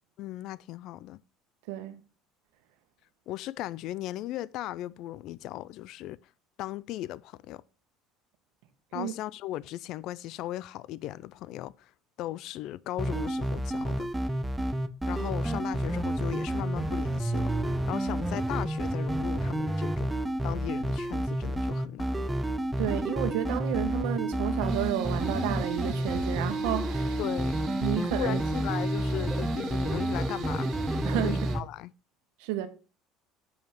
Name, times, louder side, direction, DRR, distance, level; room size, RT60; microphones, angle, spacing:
voice 1, 0.2-1.2 3.3-6.2 6.6-7.6 8.9-11.9 12.2-14.1 15.1-22.3 27.2-27.6 28.0-30.7 31.2-31.9, left 14 dB, 50° left, 0.3 m, -37 dB
voice 2, 1.7-2.0 8.9-9.1 22.8-27.2 27.8-28.4 31.0-31.4 32.4-32.7, right 12 dB, 75° right, 1.3 m, -31 dB
sound 1, 13.0-31.6, right 1 dB, 5° right, 0.6 m, -30 dB
sound 2, 24.0-24.2 24.8-25.9 26.5-27.3 27.8-29.1 29.5-30.1, left 3 dB, 75° left, 3.8 m, -55 dB
sound 3, 24.7-31.6, right 5 dB, 40° right, 2.4 m, -45 dB
7.1 x 5.5 x 5.9 m
cardioid pair, 165°, 0 cm